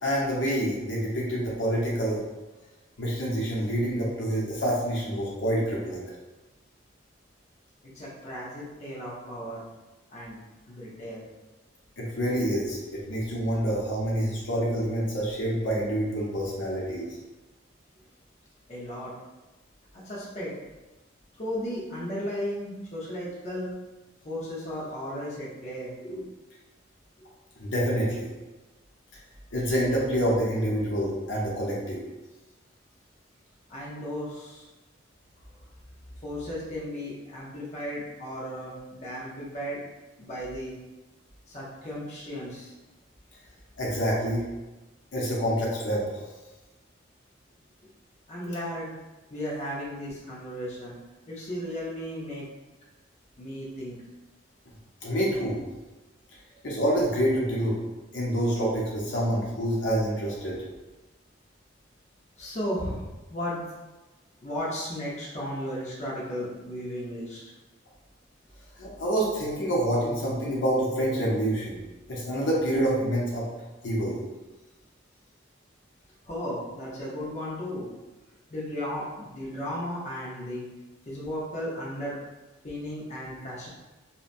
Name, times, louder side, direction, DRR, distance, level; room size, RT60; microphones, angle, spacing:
voice 1, 0.0-2.2 3.0-6.0 12.0-17.1 27.6-28.3 29.5-32.0 43.8-44.4 45.1-46.2 55.0-55.6 56.6-57.8 58.1-60.6 68.8-71.8 72.1-73.5 73.8-74.2, equal, 75° left, -4 dB, 0.7 m, -27 dB
voice 2, 7.9-9.6 10.1-10.4 10.7-11.3 18.7-19.1 19.9-20.5 21.4-23.7 24.2-26.3 33.7-34.7 36.2-39.8 40.2-40.7 41.5-42.7 48.3-48.9 49.3-51.0 51.3-52.5 53.4-54.0 62.4-63.6 64.4-67.4 76.3-77.9 78.5-80.7 81.1-82.2 82.6-83.7, equal, 35° left, -6 dB, 0.6 m, -35 dB
2.8 x 2.1 x 2.5 m, 1.1 s
head